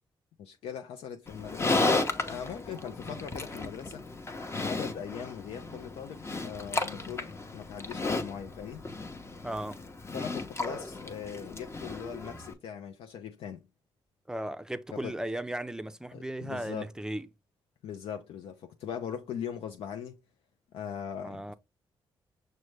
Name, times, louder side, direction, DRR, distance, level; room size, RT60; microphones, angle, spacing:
voice 1, 0.4-4.0 4.5-8.8 10.1-13.6 14.9-15.1 16.1-16.9 17.8-20.2 20.7-21.5, left 8 dB, 80° left, 0.4 m, -40 dB
Livestock farm animals working animals, 1.3-12.5, left 3 dB, 25° left, 0.7 m, -34 dB
voice 2, 9.4-9.8 14.3-17.3 21.2-21.5, right 1 dB, 5° right, 0.4 m, -36 dB
6.0 x 2.2 x 3.2 m
cardioid pair, 65°, 10 cm